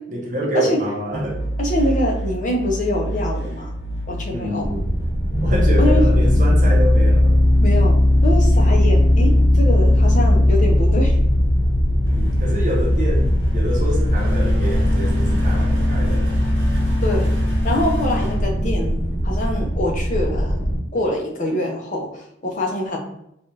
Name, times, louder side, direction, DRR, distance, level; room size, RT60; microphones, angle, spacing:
voice 1, 0.1-1.4 4.3-4.9 5.4-7.4 12.1-16.4, right 1 dB, 45° right, -2 dB, 0.7 m, -26 dB
sound 1, 1.1-19.3, equal, 90° right, 0.9 m, -31 dB
voice 2, 1.6-3.7 4.1-4.7 5.8-6.1 7.6-11.1 17.0-17.3 17.6-20.6 20.9-23.0, left 1 dB, 45° left, 0 dB, 0.6 m, -24 dB
sound 2, 4.6-20.8, left 1 dB, 60° left, 1.0 m, -18 dB
3.3 x 2.4 x 2.6 m, 0.78 s
head